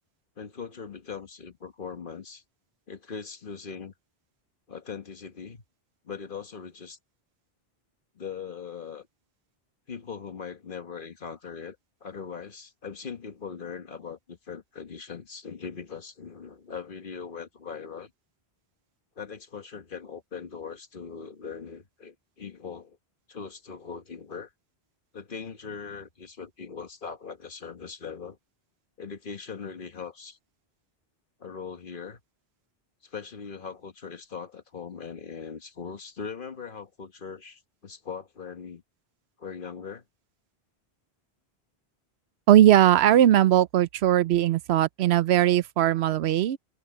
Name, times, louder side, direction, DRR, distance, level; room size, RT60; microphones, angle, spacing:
voice 1, 0.4-2.4 2.9-3.9 4.7-5.6 6.0-7.0 8.1-9.1 9.9-11.8 12.0-18.1 19.2-23.0 23.3-24.5 25.1-28.4 29.0-30.4 31.4-32.2 33.0-38.8 39.4-40.0, left 6 dB, 55° left, 1.4 m, -40 dB
voice 2, 42.5-46.6, right 12 dB, 85° right, 0.8 m, -19 dB
omnidirectional pair, 1.1 m